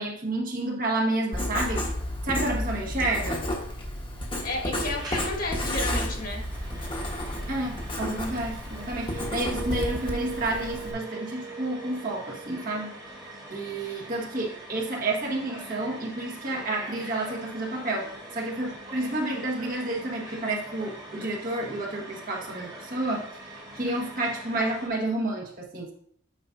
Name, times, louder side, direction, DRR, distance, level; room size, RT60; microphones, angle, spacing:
voice 1, 0.0-1.8 2.2-3.5 7.5-12.9 13.5-23.3 23.7-25.9, right 2 dB, 45° right, -1 dB, 1.5 m, -30 dB
Writing, 1.3-10.9, left 1 dB, 25° left, 1.2 m, -32 dB
voice 2, 4.4-6.4, left 2 dB, 45° left, 0 dB, 1.5 m, -32 dB
sound 1, 4.9-24.9, right 1 dB, 20° right, 1.3 m, -44 dB
sound 2, 9.0-13.8, right 4 dB, 70° right, 1.4 m, -39 dB
8.9 x 5.2 x 2.6 m, 0.65 s
head